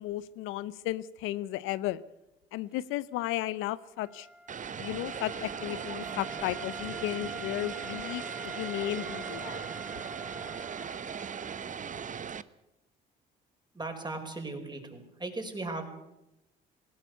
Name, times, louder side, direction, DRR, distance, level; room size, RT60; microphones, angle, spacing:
voice 1, 0.0-2.0 2.5-4.3 4.8-9.7, left 15 dB, 75° left, 0.7 m, -34 dB
Wind instrument woodwind instrument, 3.9-11.7, right 1 dB, 5° right, 1.0 m, -45 dB
Vehicle, 4.5-12.4, right 7 dB, 40° right, 1.0 m, -38 dB
voice 2, 13.7-15.9, right 2 dB, 20° right, 5.4 m, -37 dB
19.5 x 16.5 x 8.2 m
hypercardioid pair, 65°, 21 cm